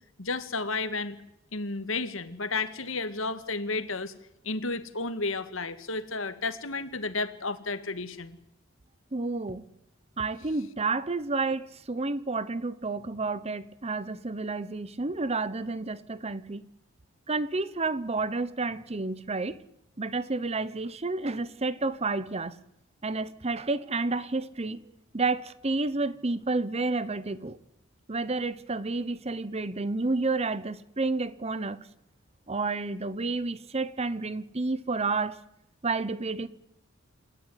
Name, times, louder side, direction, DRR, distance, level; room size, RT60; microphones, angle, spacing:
voice 1, 0.2-1.2 1.5-4.1 4.4-8.4, left 3 dB, 75° left, 2.1 m, -32 dB
voice 2, 9.1-9.7 10.2-16.7 17.3-19.6 20.0-22.6 23.0-24.9 25.1-27.6 28.1-31.8 32.5-35.4 35.8-36.5, right 3 dB, 30° right, 0.9 m, -30 dB
28.5 x 13.0 x 9.8 m
head